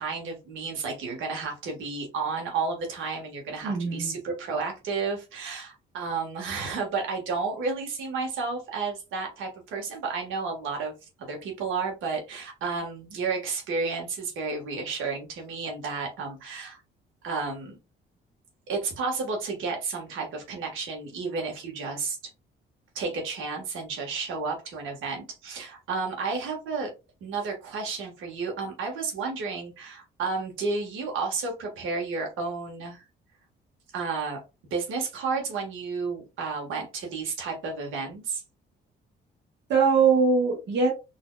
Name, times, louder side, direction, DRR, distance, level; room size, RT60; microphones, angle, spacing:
voice 1, 0.0-10.9 11.2-16.8 17.2-17.8 18.7-22.3 22.9-26.9 27.2-33.0 33.9-38.4, right 4 dB, 85° right, 1 dB, 1.4 m, -32 dB
voice 2, 3.6-4.2 39.7-40.9, right 5 dB, 65° right, 0 dB, 1.1 m, -22 dB
4.1 x 2.8 x 2.3 m, 0.27 s
cardioid pair, 90°, 20 cm